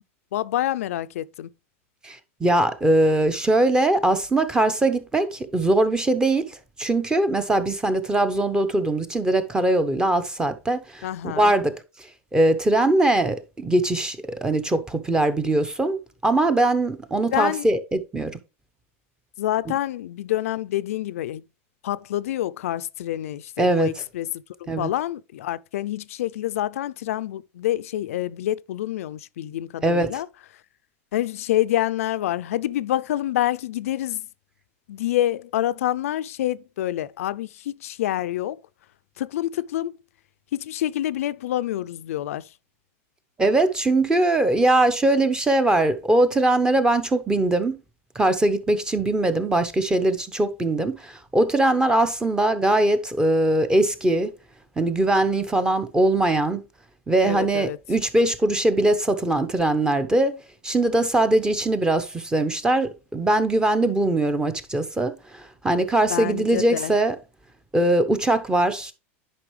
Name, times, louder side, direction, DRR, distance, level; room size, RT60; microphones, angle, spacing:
voice 1, 0.3-1.5 11.0-11.5 17.3-17.7 19.4-21.4 21.8-24.3 24.8-30.3 31.1-34.2 34.9-38.6 39.2-39.9 40.5-42.4 57.2-57.8 66.1-66.9, left 13 dB, 85° left, 0.5 m, -27 dB
voice 2, 2.0-6.5 6.8-11.1 11.3-11.8 12.3-18.3 19.7-19.8 23.6-23.9 24.7-24.9 29.8-30.2 43.4-47.8 48.1-54.3 54.8-56.6 57.1-60.4 60.6-67.2 67.7-68.9, right 2 dB, 10° right, 0.9 m, -21 dB
9.8 x 5.4 x 3.3 m
supercardioid pair, 135°, 8 cm